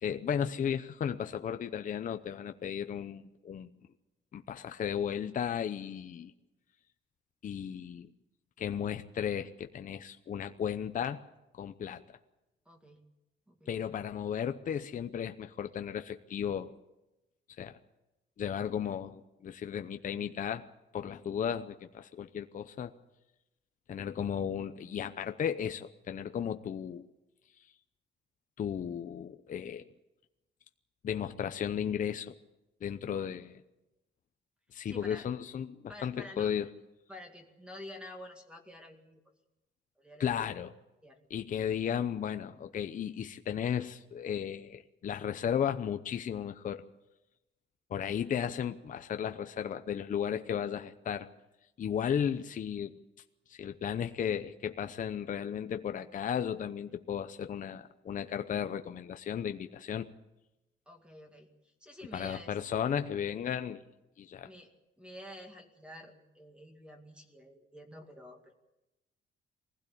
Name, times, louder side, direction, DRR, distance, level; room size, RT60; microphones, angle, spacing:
voice 1, 0.0-3.7 4.3-6.3 7.4-8.1 8.6-11.2 11.5-12.0 13.7-16.7 17.6-17.8 18.4-20.6 20.9-22.9 23.9-27.1 28.6-29.8 31.0-32.3 32.8-33.6 34.7-36.7 40.2-40.7 41.3-46.8 47.9-51.3 51.8-52.9 53.5-60.1 62.1-63.8 64.2-64.5, left 8 dB, 40° left, 8 dB, 0.7 m, -34 dB
voice 2, 12.7-13.0 13.5-13.9 33.1-33.5 34.8-35.3 35.9-36.5 37.1-39.2 40.0-40.5 41.0-41.2 60.9-62.6 64.4-64.7 65.0-68.5, left 1 dB, 5° right, 3 dB, 2.2 m, -49 dB
22.0 x 16.0 x 8.5 m, 0.97 s
cardioid pair, 165°, 21 cm